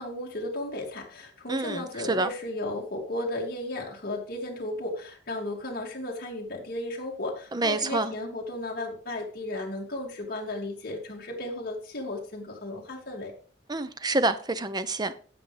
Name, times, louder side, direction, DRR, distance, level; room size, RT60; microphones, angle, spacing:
voice 1, 0.0-13.3, left 1 dB, 50° left, 2.4 m, -34 dB
voice 2, 1.5-2.3 7.5-8.1 13.7-15.1, right 2 dB, 20° right, 0.7 m, -27 dB
16.0 x 5.8 x 3.4 m
head